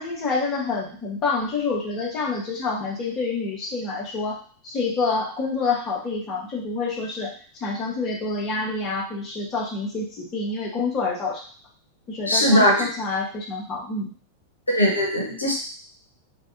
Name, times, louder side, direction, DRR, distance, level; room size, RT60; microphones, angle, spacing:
voice 1, 0.0-7.3 7.6-11.4 12.1-14.1, left 3 dB, 30° left, -3 dB, 0.8 m, -27 dB
voice 2, 12.3-12.8 14.7-15.5, equal, 80° left, 1 dB, 0.7 m, -19 dB
2.6 x 2.2 x 2.5 m, 0.43 s
figure-of-eight pair, 90°, 0 cm